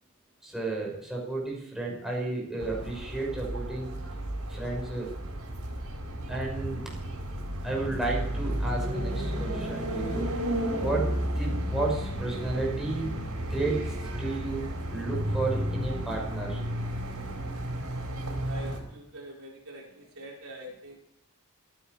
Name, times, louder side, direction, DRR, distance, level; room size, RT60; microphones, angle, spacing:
voice 1, 0.4-3.9 4.5-5.1 6.3-7.0 7.6-10.3 10.8-11.1 11.4-13.1 13.5-16.6, right 2 dB, ahead, -3 dB, 5.7 m, -32 dB
sound 1, 2.6-18.8, right 1 dB, 85° right, 4.6 m, -32 dB
voice 2, 18.4-21.0, right 1 dB, 65° right, -2 dB, 4.3 m, -44 dB
25.5 x 10.5 x 4.6 m, 0.78 s
head